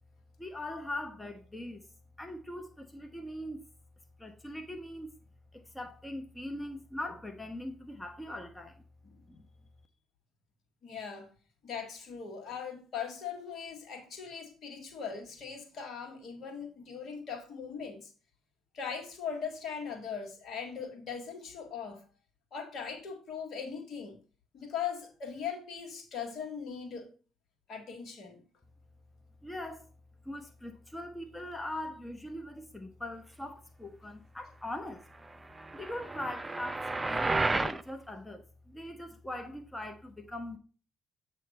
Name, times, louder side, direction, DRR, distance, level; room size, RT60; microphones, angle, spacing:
voice 1, 0.4-1.8 2.2-3.6 4.2-5.1 5.5-8.8 9.3-9.4 29.4-29.9 30.2-35.1 35.7-40.6, left 1 dB, 10° left, 1.1 m, -41 dB
voice 2, 10.8-11.3 11.6-18.1 18.7-22.1 22.5-24.2 24.5-27.1 27.7-28.4, left 6 dB, 60° left, 1.8 m, -40 dB
sound 1, 35.6-37.8, right 3 dB, 20° right, 0.5 m, -31 dB
8.2 x 3.3 x 5.4 m
hypercardioid pair, 50°, 0 cm